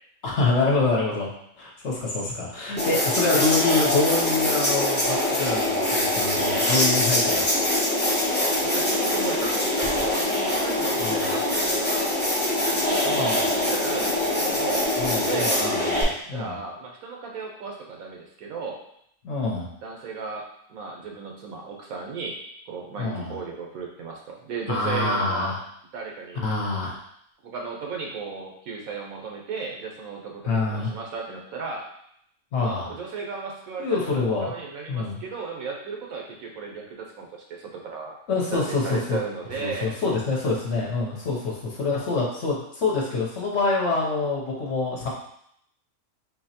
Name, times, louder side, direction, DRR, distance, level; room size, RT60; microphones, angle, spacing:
voice 1, 0.2-1.3 1.6-8.0 11.0-11.3 13.1-13.5 15.0-16.0 16.3-16.6 19.2-19.7 23.0-23.3 24.7-25.6 26.4-27.0 30.4-30.9 32.5-32.9 33.8-34.5 34.9-35.2 38.3-39.2 39.6-45.1, left 3 dB, 55° left, -3 dB, 0.9 m, -26 dB
sound 1, 2.8-16.0, left 1 dB, 10° left, 0.5 m, -23 dB
voice 2, 8.6-12.2 12.7-14.9 15.2-15.9 16.2-18.8 19.8-22.4 22.7-25.6 25.9-26.4 27.4-31.9 32.5-34.0 34.4-38.2 38.5-39.9, right 4 dB, 75° right, 0 dB, 1.2 m, -35 dB
4.4 x 2.9 x 2.8 m, 0.72 s
omnidirectional pair, 1.5 m